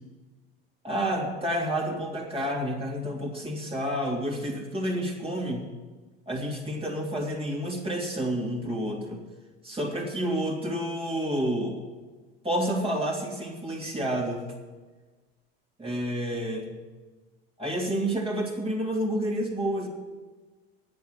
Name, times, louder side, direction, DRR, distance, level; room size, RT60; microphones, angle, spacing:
voice 1, 0.8-5.6 6.3-9.2 9.6-11.8 12.4-14.5 15.8-16.7 17.6-19.9, equal, 20° right, -2 dB, 3.2 m, -29 dB
10.5 x 8.3 x 9.7 m, 1.3 s
hypercardioid pair, 75°, 30 cm